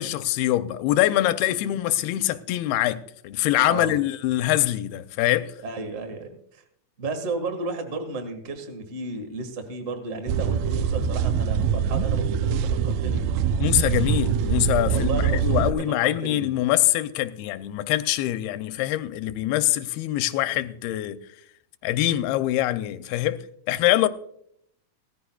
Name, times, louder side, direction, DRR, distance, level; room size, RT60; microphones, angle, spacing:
voice 1, 0.0-5.5 13.6-21.2 21.8-24.1, left 14 dB, 85° left, 2.6 m, -24 dB
voice 2, 5.6-6.6 7.0-13.4 14.9-16.5, right 3 dB, 60° right, 0.7 m, -33 dB
sound 1, 10.3-15.7, right 7 dB, 85° right, 2.0 m, -24 dB
18.5 x 14.0 x 2.3 m
omnidirectional pair, 4.4 m